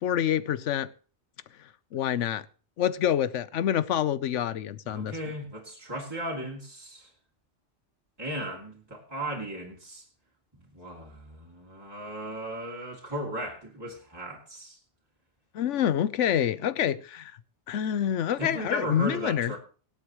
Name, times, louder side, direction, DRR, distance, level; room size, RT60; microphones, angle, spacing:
voice 1, 0.0-0.9 1.9-2.4 2.8-5.1 15.5-17.3 17.7-19.6, left 10 dB, 85° left, 1.1 m, -27 dB
voice 2, 4.8-7.1 8.2-10.0 10.5-14.8 18.4-19.6, right 1 dB, 20° right, 2.8 m, -36 dB
24.0 x 8.1 x 3.0 m
omnidirectional pair, 1.2 m